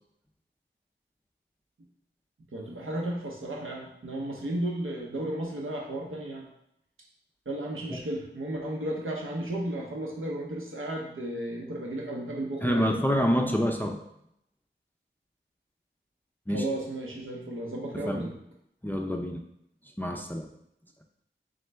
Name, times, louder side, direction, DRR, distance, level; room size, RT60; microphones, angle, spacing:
voice 1, 2.5-6.5 7.5-13.0 16.5-18.3, right 1 dB, 85° right, -1 dB, 0.8 m, -34 dB
voice 2, 12.6-14.0 16.5-16.7 17.9-18.3 18.8-19.4 20.0-20.5, equal, 10° left, 2 dB, 0.4 m, -27 dB
3.7 x 3.2 x 3.3 m, 0.76 s
cardioid pair, 40°, 21 cm